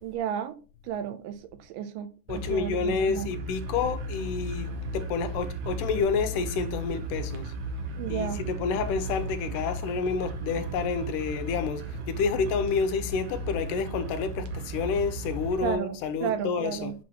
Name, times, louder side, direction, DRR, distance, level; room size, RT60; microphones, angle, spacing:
voice 1, 0.0-3.3 8.0-8.4 15.6-16.9, right 9 dB, 90° right, 2.4 m, -33 dB
voice 2, 2.3-7.5 8.1-16.9, left 5 dB, 85° left, 2.3 m, -29 dB
sound 1, 2.3-15.7, right 1 dB, 70° right, 2.1 m, -35 dB
6.2 x 6.0 x 2.9 m
omnidirectional pair, 3.8 m